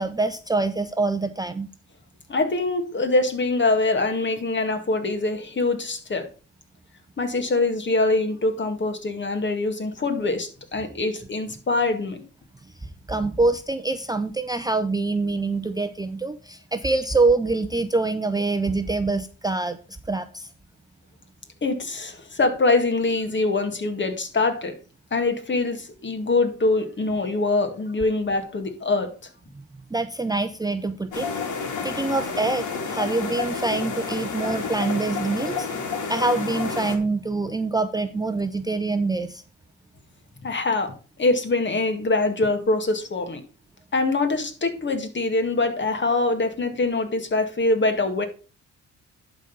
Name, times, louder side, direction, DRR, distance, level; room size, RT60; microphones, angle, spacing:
voice 1, 0.0-1.7 12.6-19.8 20.0-20.5 29.9-31.3 31.8-35.7 36.1-39.4, right 3 dB, 15° right, 0.6 m, -25 dB
voice 2, 2.3-6.3 7.2-12.2 21.6-24.8 25.1-29.3 40.4-43.4 43.9-48.3, left 2 dB, 40° left, 2.0 m, -24 dB
sound 1, 31.1-37.0, left 5 dB, 80° left, 2.1 m, -30 dB
11.5 x 4.0 x 5.3 m
cardioid pair, 90°, 30 cm